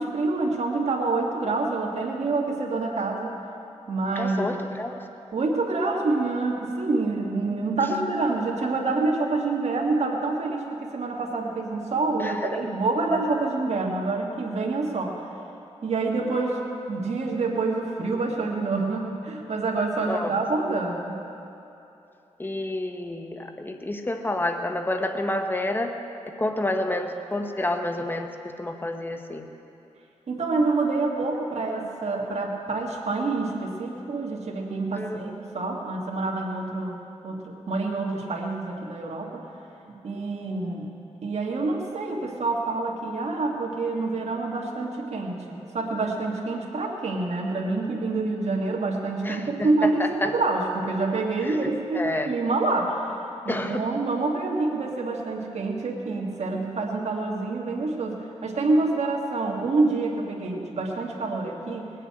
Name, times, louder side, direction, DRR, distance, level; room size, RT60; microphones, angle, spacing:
voice 1, 0.0-3.3 3.9-4.5 5.3-15.1 15.8-21.2 30.3-37.0 37.2-39.5 39.9-40.9 41.2-61.9, right 3 dB, 65° right, -1 dB, 1.8 m, -27 dB
voice 2, 4.2-5.1 12.2-12.6 20.1-20.3 22.4-26.0 26.4-28.3 28.6-29.4 34.9-35.2 49.2-50.3 51.4-51.6 51.9-52.3 53.5-53.9, left 1 dB, 15° left, 5 dB, 1.1 m, -29 dB
19.0 x 6.7 x 8.7 m, 2.8 s
cardioid pair, 65°, 12 cm